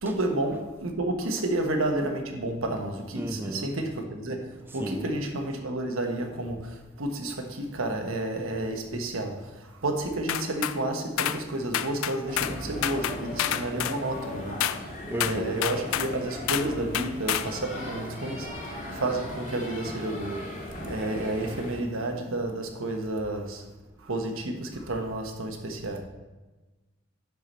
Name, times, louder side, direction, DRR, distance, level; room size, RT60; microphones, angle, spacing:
voice 1, 0.0-20.5 20.8-23.6 24.0-26.0, right 1 dB, 85° right, 1.1 m, -31 dB
voice 2, 3.2-3.7 4.8-5.1 15.1-15.6, right 1 dB, 10° right, 0.3 m, -33 dB
sound 1, 10.3-10.8 11.2-11.4 11.7-12.6 12.8-14.0 14.6-14.8 15.2-16.1 16.5-16.7 16.9-17.5, left 11 dB, 85° left, 0.4 m, -28 dB
sound 2, 12.3-21.8, left 1 dB, 35° left, 1.7 m, -38 dB
10.5 x 4.7 x 4.3 m
head